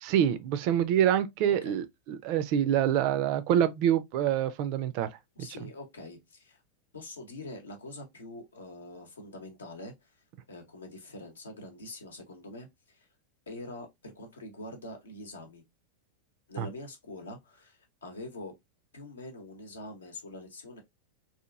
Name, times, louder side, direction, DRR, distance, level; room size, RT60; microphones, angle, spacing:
voice 1, 0.0-5.1 16.6-16.7, right 10 dB, 45° right, 0.4 m, -26 dB
voice 2, 5.4-6.6 6.9-10.1 10.5-13.1 13.5-15.6 16.5-18.5 18.9-20.8, left 2 dB, 70° left, 0.8 m, -44 dB
2.8 x 2.4 x 2.3 m
figure-of-eight pair, 90°, 0 cm